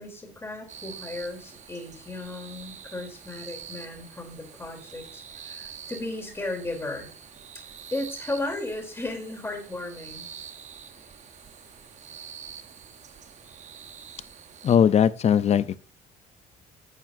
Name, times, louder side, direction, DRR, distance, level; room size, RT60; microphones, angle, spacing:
voice 1, 0.0-7.1 7.9-10.3, left 2 dB, 15° left, 3.2 m, -35 dB
Crickets and river in China (Songpan), 0.7-14.8, right 8 dB, 45° right, 0.8 m, -45 dB
voice 2, 14.6-15.8, left 8 dB, 40° left, 0.5 m, -19 dB
11.0 x 7.5 x 2.6 m
cardioid pair, 110°, 17 cm